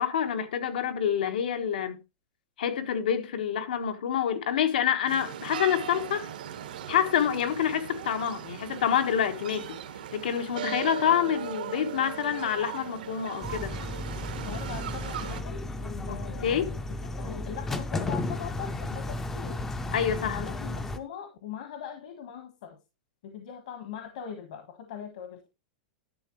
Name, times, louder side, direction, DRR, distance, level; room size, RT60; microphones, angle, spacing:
voice 1, 0.0-2.0 2.6-6.3 6.9-9.7 10.1-13.7 16.1-16.8 19.9-20.4, left 9 dB, 85° left, 1.4 m, -27 dB
sound 1, 5.1-15.4, right 10 dB, 85° right, 1.3 m, -38 dB
sound 2, 13.4-21.0, left 2 dB, 10° left, 0.5 m, -34 dB
voice 2, 14.4-19.6 20.2-22.8 23.2-25.5, left 8 dB, 60° left, 1.4 m, -41 dB
11.5 x 7.0 x 3.1 m
supercardioid pair, 175°, 5 cm